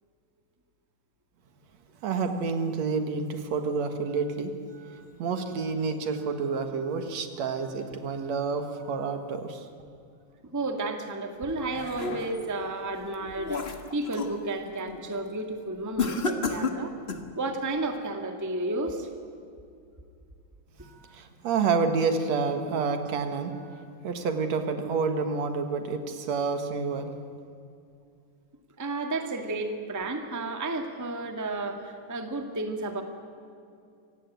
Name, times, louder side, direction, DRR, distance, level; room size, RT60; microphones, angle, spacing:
voice 1, 2.0-9.7 20.8-27.1, right 5 dB, 70° right, 7 dB, 2.7 m, -29 dB
voice 2, 10.5-16.9 17.3-19.1 28.8-33.0, right 2 dB, 10° right, 5 dB, 1.1 m, -32 dB
sound 1, 11.4-12.5 13.0-14.4 14.8-15.1 16.0-17.3, left 4 dB, 40° left, 0.9 m, -32 dB
26.0 x 16.5 x 9.3 m, 2.5 s
omnidirectional pair, 3.3 m